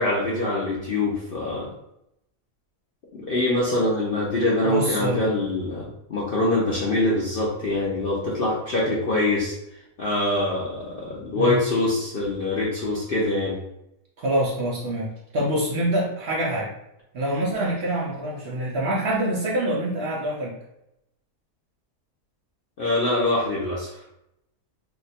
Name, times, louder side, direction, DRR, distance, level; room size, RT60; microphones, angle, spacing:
voice 1, 0.0-1.7 3.1-9.5 10.0-13.6 22.8-24.0, left 2 dB, 70° left, -5 dB, 0.5 m, -24 dB
voice 2, 4.6-5.3 11.3-11.6 14.2-16.7 17.1-20.6, right 1 dB, 75° right, -4 dB, 0.5 m, -25 dB
2.8 x 2.2 x 4.0 m, 0.84 s
omnidirectional pair, 1.7 m